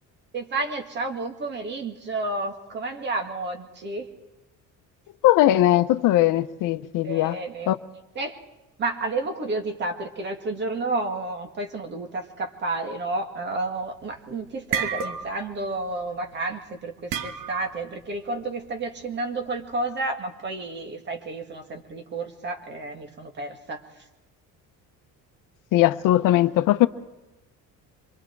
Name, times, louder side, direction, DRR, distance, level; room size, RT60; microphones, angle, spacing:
voice 1, 0.3-4.1 7.0-7.7 8.2-8.4 8.8-23.8, right 2 dB, 35° right, 2.1 m, -31 dB
voice 2, 5.2-7.4 7.7-7.8 25.7-26.9, left 14 dB, 70° left, 0.8 m, -19 dB
sound 1, 13.8-14.2 14.5-15.6 15.8-16.1 17.1-17.8, right 7 dB, 70° right, 1.3 m, -30 dB
26.5 x 23.0 x 4.7 m
cardioid pair, 175°, 33 cm